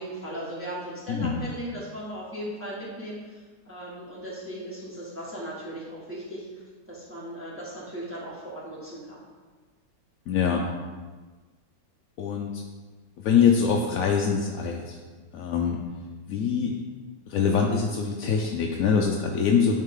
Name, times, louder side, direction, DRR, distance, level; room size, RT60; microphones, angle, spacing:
voice 1, 0.0-9.3, equal, 5° right, -7 dB, 1.6 m, -37 dB
voice 2, 10.3-10.6 12.2-12.6 13.2-15.0 15.3-15.8 16.3-16.7 17.3-19.8, left 6 dB, 70° left, 1 dB, 0.8 m, -24 dB
9.7 x 4.5 x 3.8 m, 1.4 s
omnidirectional pair, 2.0 m